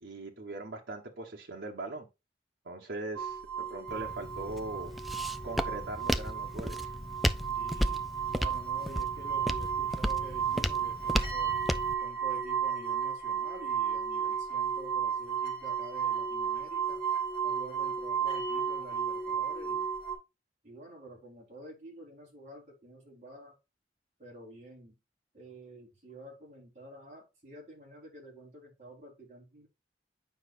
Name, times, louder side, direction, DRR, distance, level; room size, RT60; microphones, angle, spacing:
voice 1, 0.0-2.1 2.6-4.9 5.4-6.9, right 2 dB, 90° right, -1 dB, 1.2 m, -40 dB
sound 1, 3.1-20.1, right 7 dB, 30° left, 2.9 m, -33 dB
Walk footsteps, 3.9-11.9, equal, ahead, 0.3 m, -34 dB
voice 2, 7.6-8.0 8.3-11.6 12.0-17.0 17.4-19.9 20.6-23.6 24.2-25.0 25.3-29.7, right 1 dB, 40° right, -2 dB, 4.0 m, -49 dB
8.9 x 5.5 x 2.5 m, 0.25 s
head